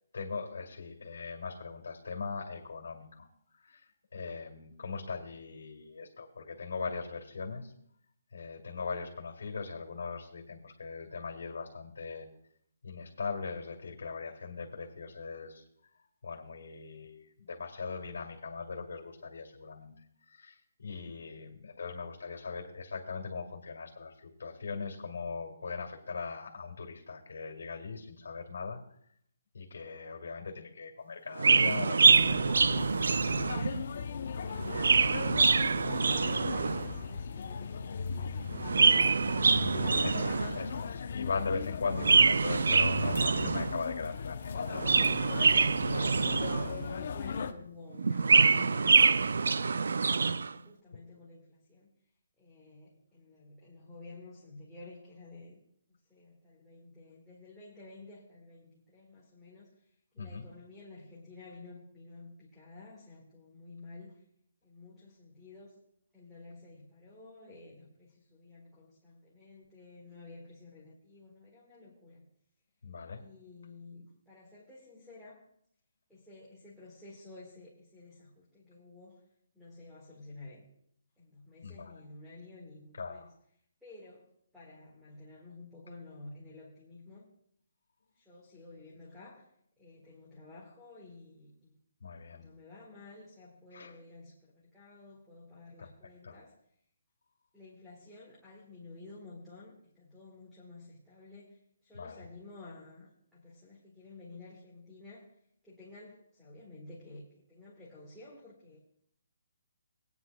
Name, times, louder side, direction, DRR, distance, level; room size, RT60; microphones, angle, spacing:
voice 1, 0.1-3.3 3.6-7.7 8.3-12.3 12.8-19.9 20.2-28.8 29.5-32.7 40.0-44.6 50.9-51.0 60.2-60.4 72.8-73.2 81.6-82.0 82.9-83.3 92.0-92.4 93.7-93.9 95.8-95.9 96.2-96.4 101.9-102.3, left 4 dB, 65° left, 1 dB, 2.1 m, -40 dB
Chirp tweet, 31.4-33.8 34.5-37.0 38.5-40.7 41.9-43.8 44.6-46.9 48.0-50.5, right 4 dB, 70° right, 0.3 m, -25 dB
sound 1, 32.0-47.5, left 5 dB, 45° left, 0.6 m, -38 dB
voice 2, 35.1-40.1 46.0-51.9 52.4-55.6 55.9-59.7 60.1-64.2 64.6-65.8 66.1-72.3 73.1-75.4 76.1-79.2 79.5-80.7 81.2-83.3 83.8-84.3 84.5-87.3 88.1-89.4 89.8-91.8 92.3-96.5 97.5-105.3 105.6-108.8, left 3 dB, ahead, -8 dB, 1.6 m, -52 dB
20.5 x 9.5 x 2.2 m, 0.68 s
hypercardioid pair, 175°, 0 cm